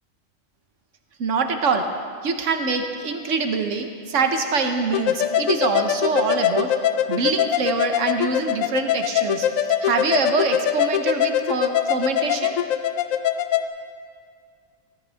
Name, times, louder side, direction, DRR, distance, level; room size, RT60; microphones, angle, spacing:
voice 1, 1.2-1.9 2.2-6.7 7.1-9.5 9.8-12.5, right 4 dB, 70° right, 6 dB, 1.2 m, -24 dB
sound 1, 4.9-13.6, left 10 dB, 85° left, 1.0 m, -23 dB
16.0 x 14.5 x 3.4 m, 2.1 s
omnidirectional pair, 1.3 m